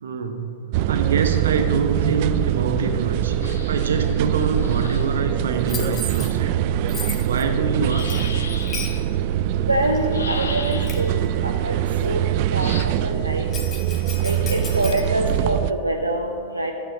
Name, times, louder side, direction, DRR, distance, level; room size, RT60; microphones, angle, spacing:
voice 1, 0.0-3.4 3.7-6.6 7.1-8.1, right 4 dB, 65° right, 6 dB, 1.0 m, -25 dB
sound 1, 0.7-15.7, right 12 dB, 45° right, 0.3 m, -23 dB
sound 2, 3.4-5.2 7.7-9.0 10.1-11.2 12.6-12.8, left 4 dB, 75° left, 0.9 m, -35 dB
Bell, 5.7-6.3 6.9-7.4 8.0-9.0 9.9-10.0 10.6-11.1 13.5-15.0, left 5 dB, 30° left, 1.1 m, -35 dB
voice 2, 9.7-11.1 11.4-11.7 12.0-12.7 13.0-13.5 14.2-16.7, right 1 dB, 90° right, 1 dB, 0.6 m, -25 dB
10.5 x 4.8 x 7.1 m, 2.3 s
figure-of-eight pair, 100°, 0 cm